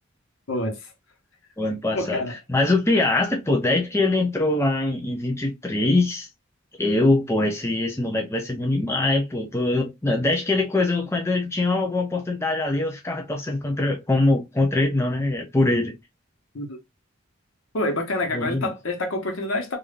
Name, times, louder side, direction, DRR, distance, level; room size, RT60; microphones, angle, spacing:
voice 1, 0.5-0.8 1.9-2.3 16.5-16.8 17.7-19.8, left 1 dB, 70° left, 0.9 m, -27 dB
voice 2, 1.6-2.2 2.5-6.3 6.8-15.9 18.3-18.7, left 2 dB, 10° left, 0.4 m, -23 dB
3.4 x 2.4 x 2.3 m
head